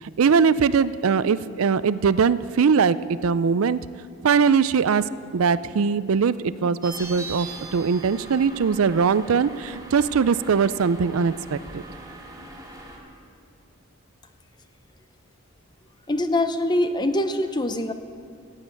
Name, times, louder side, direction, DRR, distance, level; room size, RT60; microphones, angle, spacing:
voice 1, 0.0-3.8 4.2-5.0 5.3-11.8, right 6 dB, 90° right, 16 dB, 0.4 m, -21 dB
sound 1, 6.8-13.0, right 2 dB, 15° right, 2.2 m, -40 dB
voice 2, 16.1-17.9, left 1 dB, 20° left, 9 dB, 0.6 m, -23 dB
15.0 x 8.5 x 8.9 m, 2.4 s
head